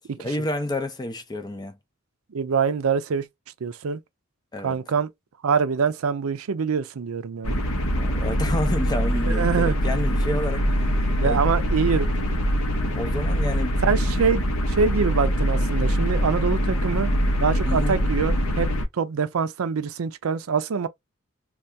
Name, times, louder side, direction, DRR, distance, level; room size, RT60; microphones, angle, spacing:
voice 1, 0.2-1.8 4.5-4.8 8.0-10.7 11.2-11.4 12.9-13.7 17.7-18.0, left 1 dB, 20° left, 0.5 m, -29 dB
voice 2, 2.3-3.3 3.6-4.0 4.6-5.1 5.4-7.6 9.2-9.8 11.2-12.3 13.8-17.1 17.4-20.9, right 5 dB, 85° right, 0.5 m, -25 dB
sound 1, 7.4-18.9, equal, 80° left, 0.7 m, -23 dB
2.7 x 2.4 x 3.3 m
head